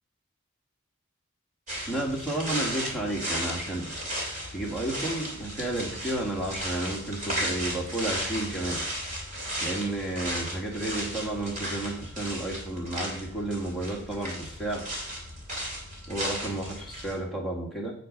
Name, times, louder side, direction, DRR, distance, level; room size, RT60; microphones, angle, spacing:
sound 1, 1.7-17.2, equal, 35° right, 2.7 m, -35 dB
voice 1, 1.9-3.9 4.5-8.8 9.6-14.8 16.1-17.9, right 1 dB, ahead, -4 dB, 2.1 m, -32 dB
8.3 x 6.3 x 5.3 m, 0.65 s
head